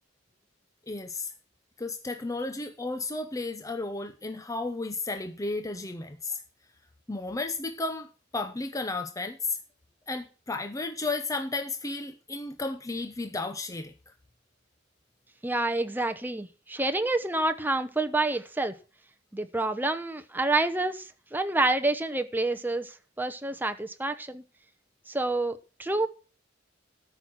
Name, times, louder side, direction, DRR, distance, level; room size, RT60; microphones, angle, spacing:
voice 1, 0.9-1.3 1.8-6.4 7.1-9.6 10.1-13.9, left 3 dB, 15° left, 0.7 m, -33 dB
voice 2, 15.4-18.7 19.3-24.4 25.1-26.1, right 2 dB, 10° right, 0.9 m, -28 dB
13.0 x 5.9 x 6.2 m
head